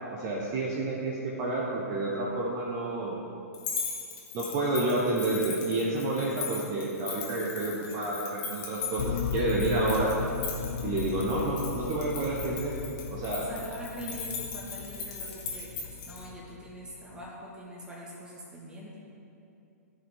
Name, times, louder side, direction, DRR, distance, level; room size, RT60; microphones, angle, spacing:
voice 1, 0.1-3.2 4.3-10.1 10.8-12.8 13.1-13.5, right 2 dB, 35° right, -4 dB, 1.3 m, -29 dB
sound 1, 3.5-16.2, left 5 dB, 35° left, 1.7 m, -39 dB
sound 2, 9.0-17.3, left 6 dB, 55° left, 0.6 m, -37 dB
voice 2, 13.3-19.0, equal, 10° right, -5 dB, 1.9 m, -43 dB
14.5 x 5.4 x 3.8 m, 2.7 s
figure-of-eight pair, 110°, 9 cm